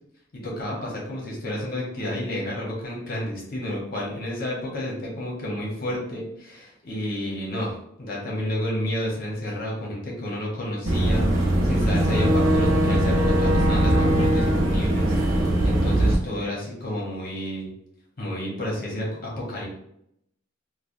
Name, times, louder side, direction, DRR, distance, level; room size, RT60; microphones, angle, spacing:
voice 1, 0.3-7.7 8.0-17.7 18.2-19.7, left 1 dB, 45° left, -3 dB, 0.9 m, -30 dB
Boat Water vehicle / Engine, 10.9-16.1, right 1 dB, 85° right, 0.7 m, -20 dB
3.1 x 2.2 x 2.6 m, 0.73 s
head